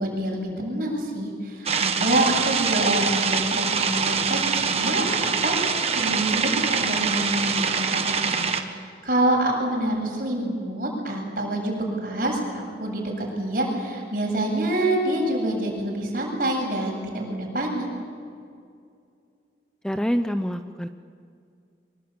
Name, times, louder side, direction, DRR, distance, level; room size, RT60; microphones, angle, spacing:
voice 1, 0.0-8.4 8.7-17.9, right 1 dB, 50° right, -1 dB, 8.0 m, -26 dB
sound 1, 1.7-8.6, right 6 dB, 35° right, 1.4 m, -24 dB
voice 2, 19.8-20.9, equal, 5° left, 8 dB, 0.6 m, -26 dB
24.5 x 22.0 x 8.7 m, 2.3 s
head